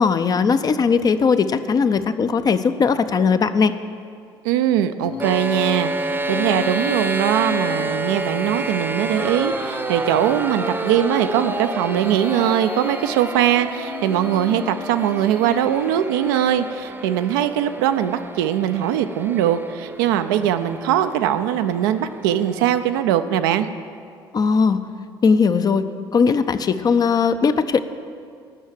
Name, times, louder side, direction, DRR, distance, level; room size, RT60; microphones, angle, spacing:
voice 1, 0.0-3.7 24.3-24.8 25.2-27.8, left 5 dB, 30° left, 11 dB, 0.6 m, -18 dB
voice 2, 4.4-23.7, right 10 dB, 65° right, 9 dB, 0.5 m, -21 dB
sound 1, 5.0-16.1, left 7 dB, 70° left, 1.2 m, -35 dB
sound 2, 5.2-23.0, right 2 dB, 15° right, 0.8 m, -29 dB
13.0 x 6.3 x 7.7 m, 2.2 s
figure-of-eight pair, 50°, 12 cm